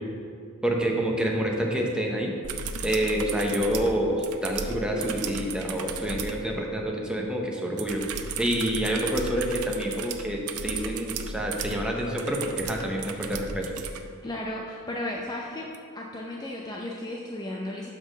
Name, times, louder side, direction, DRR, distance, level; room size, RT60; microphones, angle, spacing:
voice 1, 0.6-2.3 2.8-8.0 8.4-13.6, equal, 5° right, -1 dB, 0.8 m, -27 dB
sound 1, 2.4-6.4 7.8-14.0 15.7-15.8, right 5 dB, 75° right, 0.5 m, -35 dB
voice 2, 14.2-15.7 15.9-17.9, left 1 dB, 20° left, -1 dB, 0.5 m, -34 dB
6.0 x 5.2 x 6.3 m, 2.5 s
head